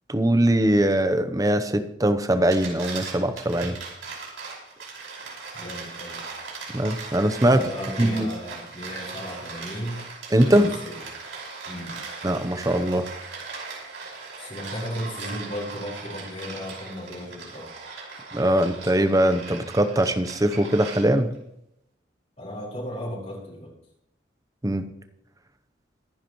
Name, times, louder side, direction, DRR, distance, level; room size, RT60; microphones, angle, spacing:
voice 1, 0.1-3.8 6.7-7.6 8.0-8.3 10.3-10.7 12.2-13.1 18.3-21.3 24.6-24.9, right 1 dB, 20° right, 9 dB, 0.8 m, -21 dB
sound 1, 2.3-21.4, right 4 dB, 90° right, 5.3 m, -39 dB
voice 2, 5.5-6.3 7.4-10.0 10.4-11.0 11.6-12.0 14.4-17.7 22.4-23.7, equal, 40° left, -6 dB, 4.7 m, -35 dB
25.0 x 10.5 x 3.1 m, 0.83 s
head